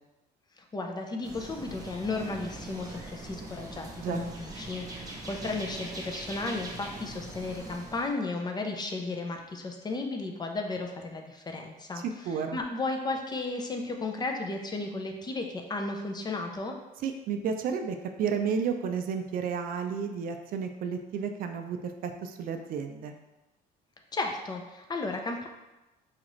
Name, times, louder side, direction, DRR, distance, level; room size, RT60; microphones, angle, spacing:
voice 1, 0.6-16.8 24.1-25.5, left 3 dB, 25° left, 3 dB, 0.4 m, -34 dB
sound 1, 1.2-8.1, right 2 dB, 20° right, 0.7 m, -42 dB
voice 2, 12.0-12.6 17.0-23.1, right 6 dB, 60° right, 6 dB, 0.4 m, -32 dB
4.1 x 2.4 x 3.0 m, 1.0 s
cardioid pair, 110°, 17 cm